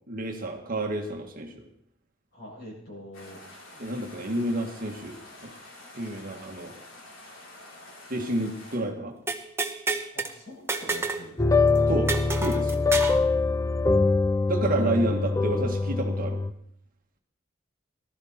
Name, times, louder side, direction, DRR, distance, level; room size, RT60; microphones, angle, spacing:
voice 1, 0.1-1.6 3.8-5.5 5.9-6.7 8.1-9.1 11.9-12.8 14.5-16.4, right 1 dB, 45° right, 3 dB, 1.8 m, -30 dB
voice 2, 2.3-3.4 10.1-11.7 14.8-15.3, left 1 dB, 55° left, -3 dB, 7.7 m, -44 dB
sound 1, 3.1-8.8, left 1 dB, 85° left, 4.1 m, -47 dB
sound 2, 9.3-10.3 10.7-11.3 11.5-11.6 12.1-13.2, right 3 dB, 15° right, 1.2 m, -29 dB
sound 3, 11.4-16.5, left 3 dB, 15° left, 0.5 m, -23 dB
18.0 x 13.5 x 4.4 m, 0.70 s
head